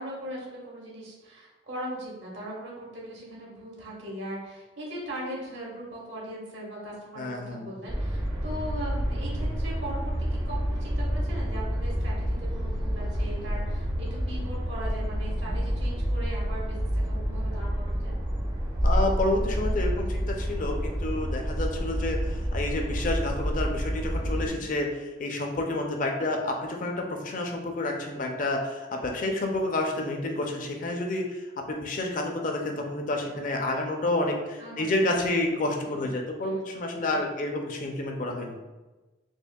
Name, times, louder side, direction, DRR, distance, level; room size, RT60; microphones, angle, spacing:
voice 1, 0.0-18.2 24.2-24.6 30.3-30.6 34.6-35.2 35.9-36.1 36.4-36.8 37.1-37.2, right 1 dB, 70° right, -4 dB, 1.4 m, -39 dB
voice 2, 7.2-7.7 18.8-38.6, left 2 dB, 45° left, 3 dB, 0.4 m, -29 dB
sound 1, 7.9-24.5, equal, 25° right, 0.5 m, -29 dB
4.3 x 3.0 x 2.3 m, 1.1 s
head